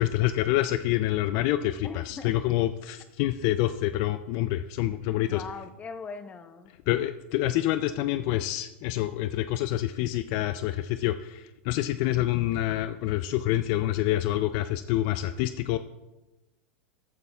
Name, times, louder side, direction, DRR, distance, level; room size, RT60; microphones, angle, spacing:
voice 1, 0.0-5.4 6.9-15.8, left 14 dB, 55° left, 12 dB, 0.4 m, -27 dB
voice 2, 1.8-2.3 5.2-6.7, left 5 dB, 20° left, 9 dB, 0.7 m, -40 dB
14.0 x 9.2 x 2.3 m, 1.0 s
hypercardioid pair, 120°, 6 cm